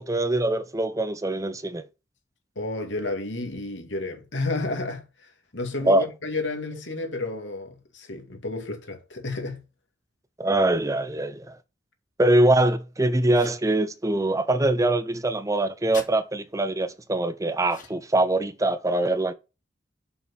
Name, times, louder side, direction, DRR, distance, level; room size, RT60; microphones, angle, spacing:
voice 1, 0.0-1.8 5.8-6.1 10.4-11.6 12.2-19.3, right 1 dB, 20° right, 0.7 m, -23 dB
voice 2, 2.6-9.6, left 2 dB, 80° left, 2.5 m, -31 dB
sound 1, 13.3-13.7 15.9-16.1 17.6-18.2, left 5 dB, 45° left, 1.9 m, -42 dB
7.0 x 6.1 x 6.2 m
head